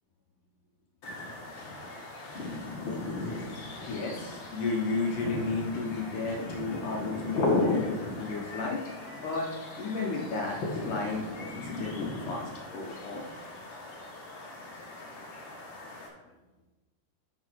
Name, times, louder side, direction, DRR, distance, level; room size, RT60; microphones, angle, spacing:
sound 1, 1.0-16.1, left 2 dB, 55° left, 1.4 m, -36 dB
voice 1, 3.9-8.8 9.1-9.5 9.8-10.6 10.8-11.5 11.8-13.3, left 3 dB, 70° left, -1 dB, 2.1 m, -33 dB
13.0 x 5.3 x 4.5 m, 1.1 s
omnidirectional pair, 5.0 m